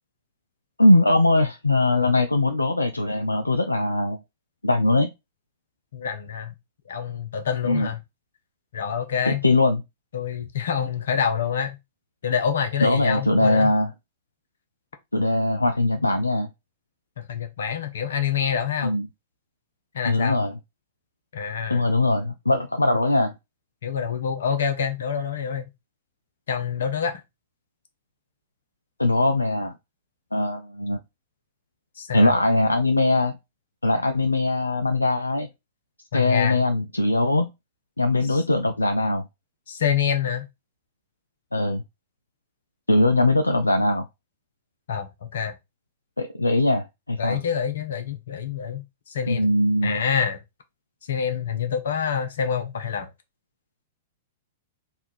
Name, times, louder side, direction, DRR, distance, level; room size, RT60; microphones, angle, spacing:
voice 1, 0.8-4.2 4.6-5.1 7.6-7.9 9.3-9.8 12.8-13.9 15.1-16.5 18.8-19.1 20.0-20.5 21.7-23.3 29.0-29.7 30.3-31.0 32.1-33.4 33.8-35.5 36.1-37.5 38.0-39.2 41.5-41.8 42.9-44.1 46.2-47.4 49.3-50.0, left 2 dB, 85° left, 0.3 m, -21 dB
voice 2, 5.9-6.5 6.9-8.0 8.7-9.4 10.1-11.8 12.2-13.7 17.2-19.0 19.9-20.4 21.3-21.9 23.8-25.7 26.5-27.2 32.0-32.4 36.1-36.6 38.3-38.4 39.7-40.5 44.9-45.5 47.2-49.5 49.8-50.4 51.1-53.1, left 7 dB, 65° left, 0.8 m, -27 dB
3.5 x 2.5 x 4.4 m
figure-of-eight pair, 105°, 0 cm